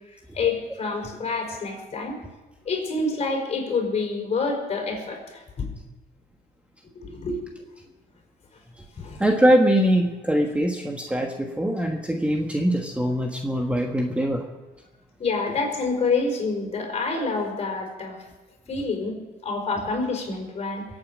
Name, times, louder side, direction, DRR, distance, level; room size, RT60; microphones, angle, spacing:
voice 1, 0.3-2.2 2.7-5.7 7.0-7.4 9.0-9.2 15.2-18.2 18.7-19.2 19.4-20.9, left 4 dB, 40° left, 1 dB, 5.2 m, -27 dB
voice 2, 9.2-14.4, equal, 5° right, 3 dB, 1.3 m, -22 dB
23.0 x 8.9 x 6.2 m, 1.2 s
cardioid pair, 110°, 17 cm